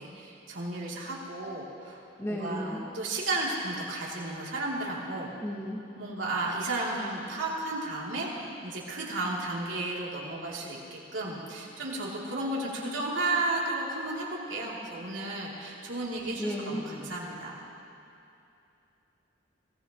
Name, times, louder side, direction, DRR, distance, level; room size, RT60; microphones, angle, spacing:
voice 1, 0.0-5.3 5.9-17.6, right 2 dB, 85° right, -4 dB, 3.0 m, -33 dB
voice 2, 2.2-2.9 5.4-5.8 16.4-16.8, equal, 15° left, -4 dB, 1.5 m, -33 dB
22.5 x 17.5 x 3.1 m, 2.8 s
head